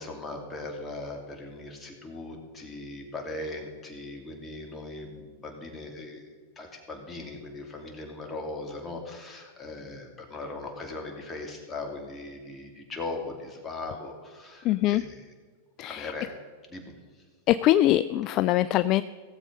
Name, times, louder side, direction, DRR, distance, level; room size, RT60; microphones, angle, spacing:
voice 1, 0.0-6.3 6.6-15.2 15.8-16.3 16.7-16.9, left 2 dB, 20° left, 2 dB, 2.7 m, -39 dB
voice 2, 14.6-15.0 15.8-16.1 17.5-19.0, left 14 dB, 45° left, 14 dB, 0.3 m, -23 dB
16.5 x 7.5 x 5.5 m, 1.5 s
hypercardioid pair, 100°, 0 cm